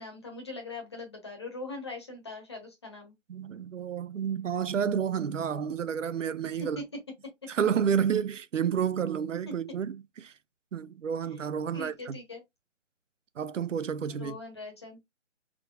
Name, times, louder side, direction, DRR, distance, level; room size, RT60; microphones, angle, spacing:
voice 1, 0.0-3.1 6.6-6.8 11.7-12.4 14.1-15.0, left 2 dB, 20° left, 1.0 m, -41 dB
voice 2, 3.3-6.8 7.5-10.3 10.7-12.2 13.4-14.4, right 8 dB, 85° right, 0.6 m, -30 dB
4.6 x 3.7 x 2.3 m
hypercardioid pair, 170°, 37 cm